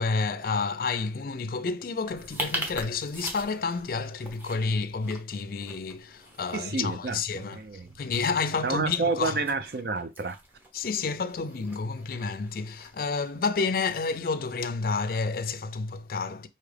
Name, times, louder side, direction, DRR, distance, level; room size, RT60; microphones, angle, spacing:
voice 1, 0.0-7.6 8.0-9.4 10.7-16.5, left 4 dB, 50° left, 0.4 m, -30 dB
sound 1, 2.0-14.2, right 1 dB, 10° right, 0.7 m, -42 dB
voice 2, 6.5-8.0 8.6-10.4, right 4 dB, 60° right, 0.5 m, -30 dB
4.9 x 2.8 x 3.3 m
head